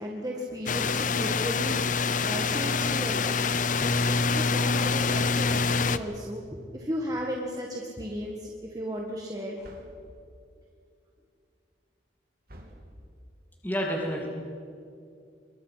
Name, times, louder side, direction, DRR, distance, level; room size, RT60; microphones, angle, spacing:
voice 1, 0.0-3.4 3.7-9.7, equal, 20° right, -1 dB, 1.8 m, -35 dB
sound 1, 0.7-6.0, left 4 dB, 45° left, 0.7 m, -26 dB
sound 2, 5.4-6.4 9.6-10.2 12.5-13.3, equal, 55° right, 3.0 m, -49 dB
voice 2, 13.6-14.3, equal, 10° left, -1 dB, 2.7 m, -29 dB
27.5 x 23.0 x 5.8 m, 2.4 s
head